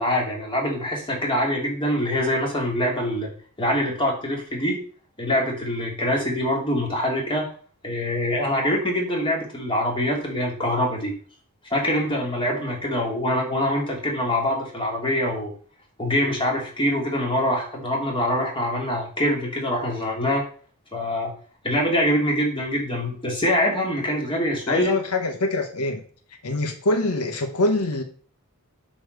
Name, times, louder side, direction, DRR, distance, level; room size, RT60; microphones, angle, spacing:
voice 1, 0.0-3.3 3.6-4.8 5.2-7.5 7.8-11.1 11.7-15.5 16.0-20.4 20.9-21.3 21.6-24.9, left 1 dB, 25° left, 2.7 m, -24 dB
voice 2, 24.7-26.0 26.4-28.0, left 2 dB, 90° left, 1.1 m, -24 dB
8.1 x 4.3 x 6.6 m
head